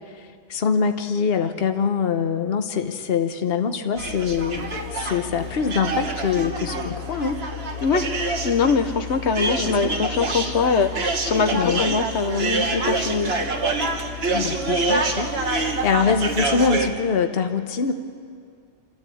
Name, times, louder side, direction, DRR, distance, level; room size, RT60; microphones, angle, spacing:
voice 1, 0.1-7.4 9.5-9.9 11.5-11.9 14.3-17.9, left 6 dB, 60° left, 7 dB, 1.2 m, -24 dB
sound 1, 4.0-16.9, right 2 dB, 65° right, 1.6 m, -26 dB
voice 2, 8.4-13.3, left 5 dB, 80° left, 7 dB, 1.3 m, -22 dB
28.5 x 14.0 x 8.5 m, 2.3 s
omnidirectional pair, 1.1 m